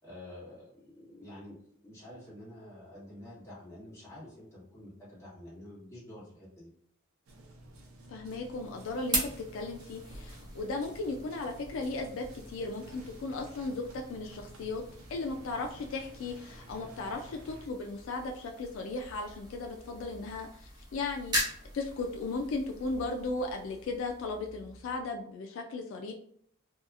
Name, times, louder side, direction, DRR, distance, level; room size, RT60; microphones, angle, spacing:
voice 1, 0.0-1.6 1.8-6.7, left 1 dB, 15° left, -8 dB, 1.3 m, -48 dB
sound 1, 7.3-17.7, right 1 dB, 90° right, 0.6 m, -52 dB
voice 2, 8.1-14.8 15.1-26.1, left 3 dB, 70° left, 3 dB, 0.3 m, -36 dB
sound 2, 8.3-25.2, right 1 dB, 20° right, 0.7 m, -41 dB
2.8 x 2.3 x 2.4 m, 0.65 s
head